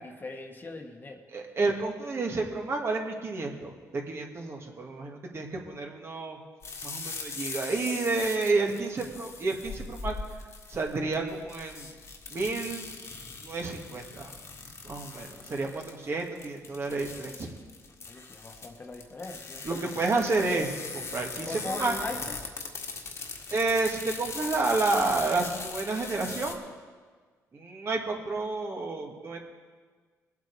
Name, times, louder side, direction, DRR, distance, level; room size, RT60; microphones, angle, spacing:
voice 1, 0.0-1.2 18.1-19.7 21.4-22.2, left 2 dB, 30° left, 3 dB, 1.5 m, -39 dB
voice 2, 1.3-6.4 6.8-10.1 10.7-11.9 12.3-13.0 13.4-14.3 14.8-17.5 19.6-21.9 23.5-26.6 27.5-29.4, right 3 dB, 45° right, 1 dB, 2.1 m, -30 dB
sound 1, 6.6-26.5, left 4 dB, 45° left, 1.8 m, -40 dB
21.0 x 8.2 x 4.9 m, 1.5 s
cardioid pair, 85°, 6 cm